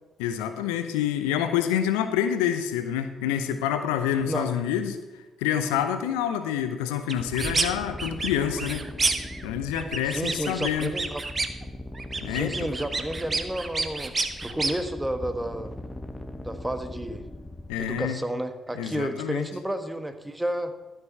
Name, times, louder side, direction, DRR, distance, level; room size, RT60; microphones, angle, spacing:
voice 1, 0.2-5.0 5.4-8.8 9.4-10.9 12.2-12.7 17.7-18.2 18.8-19.5, left 9 dB, 80° left, 9 dB, 0.7 m, -27 dB
sound 1, 7.1-7.7 8.0-9.4 9.7-11.6 11.9-14.7, right 3 dB, 35° right, 1.1 m, -29 dB
sound 2, 7.2-18.1, left 1 dB, 25° left, 1.2 m, -40 dB
voice 2, 10.0-11.2 12.3-14.1 14.4-15.7 16.4-17.2 17.8-20.7, right 1 dB, 10° right, 8 dB, 1.3 m, -31 dB
13.0 x 6.9 x 5.6 m, 1.2 s
hypercardioid pair, 45°, 0 cm